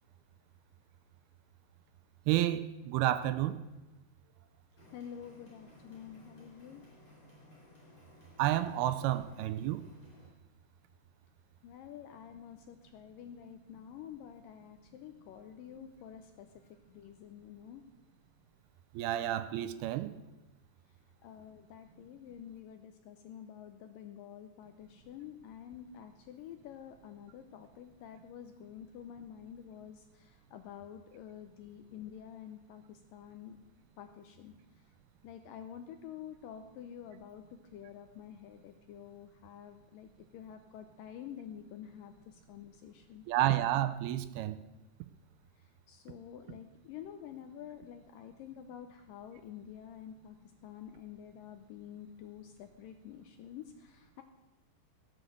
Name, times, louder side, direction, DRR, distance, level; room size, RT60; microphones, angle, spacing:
voice 1, 2.3-3.6 8.4-9.9 18.9-20.1 43.3-44.6, right 13 dB, 80° right, 12 dB, 2.5 m, -30 dB
sound 1, 4.8-10.3, left 1 dB, 30° left, 5.2 m, -58 dB
voice 2, 4.9-6.8 11.6-16.5 16.9-17.8 21.2-33.6 34.0-34.5 35.2-43.3 45.9-50.4 50.6-54.2, left 9 dB, 75° left, 7 dB, 2.1 m, -49 dB
16.5 x 7.9 x 7.8 m, 1.0 s
omnidirectional pair, 4.7 m